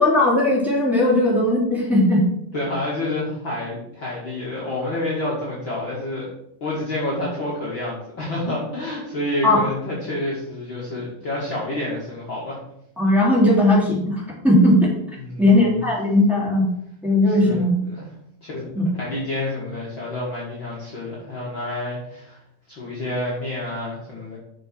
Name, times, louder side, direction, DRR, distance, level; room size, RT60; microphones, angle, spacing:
voice 1, 0.0-2.2 9.4-9.6 13.0-14.9 15.4-16.7 17.0-17.8 18.7-18.9, left 1 dB, ahead, -7 dB, 2.7 m, -17 dB
voice 2, 2.5-6.3 6.6-12.6 15.2-15.8 17.3-17.6 17.9-18.1 18.4-18.6 19.0-22.4 22.7-24.4, left 1 dB, 40° left, -6 dB, 2.1 m, -28 dB
6.8 x 5.6 x 6.0 m, 0.76 s
omnidirectional pair, 4.0 m